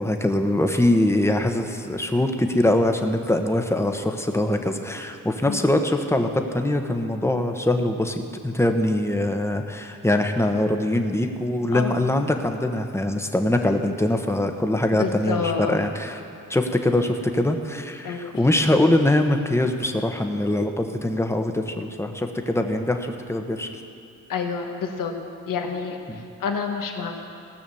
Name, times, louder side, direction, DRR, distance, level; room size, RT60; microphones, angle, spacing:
voice 1, 0.0-16.2 16.5-23.8 26.1-26.3, left 1 dB, 10° left, 5 dB, 1.1 m, -23 dB
voice 2, 14.9-15.8 18.0-18.4 24.3-25.1 25.5-26.0 26.4-27.2, left 6 dB, 75° left, 3 dB, 1.4 m, -28 dB
17.5 x 6.2 x 7.1 m, 2.5 s
cardioid pair, 65°, 33 cm